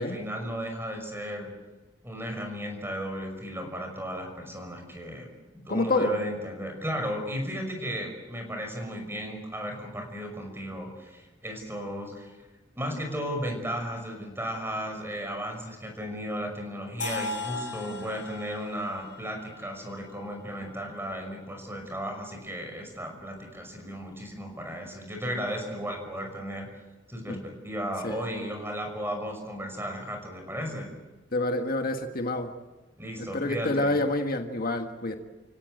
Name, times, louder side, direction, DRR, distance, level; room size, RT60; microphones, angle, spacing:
voice 1, 0.0-1.5 2.0-5.3 5.5-12.4 12.8-26.7 27.1-30.9 33.0-33.9, equal, 15° right, 3 dB, 5.9 m, -35 dB
voice 2, 5.7-6.1 27.3-27.4 28.0-28.2 31.3-32.5 33.2-35.2, left 2 dB, 55° left, 5 dB, 1.6 m, -28 dB
sound 1, 17.0-20.9, left 3 dB, 85° left, 3.8 m, -38 dB
29.5 x 17.0 x 7.9 m, 1.2 s
head